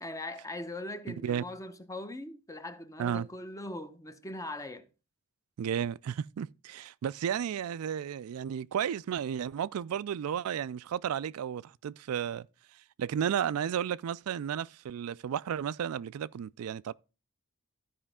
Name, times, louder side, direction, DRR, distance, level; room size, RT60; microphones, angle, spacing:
voice 1, 0.0-4.9, left 1 dB, 15° left, 0.8 m, -40 dB
voice 2, 5.6-12.5 13.0-16.9, right 8 dB, 90° right, 0.3 m, -33 dB
13.5 x 5.0 x 3.6 m
head